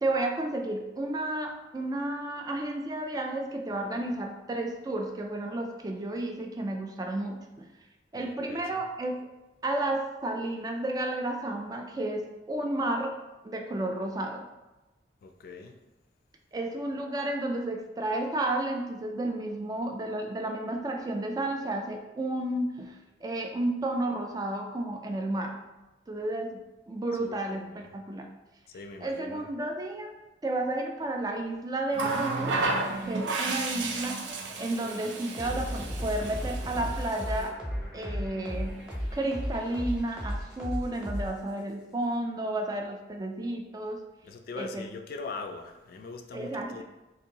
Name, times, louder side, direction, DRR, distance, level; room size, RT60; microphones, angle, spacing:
voice 1, 0.0-7.7 8.1-9.3 9.6-13.2 13.4-14.5 16.5-25.6 26.1-26.6 26.9-28.3 29.0-30.2 30.4-32.6 33.1-34.2 34.6-37.5 37.9-38.8 39.1-44.0 44.6-44.9 46.3-46.8, right 1 dB, 20° right, 3 dB, 0.3 m, -32 dB
voice 2, 8.1-8.8 15.2-15.8 27.2-27.9 28.7-29.5 44.2-46.8, left 3 dB, 55° left, 5 dB, 0.3 m, -42 dB
sound 1, 31.9-41.7, equal, 5° right, 0.9 m, -36 dB
Water tap faucet, 31.9-37.5 38.7-38.9, right 3 dB, 85° right, 0.5 m, -33 dB
2.7 x 2.6 x 3.8 m, 1.0 s
head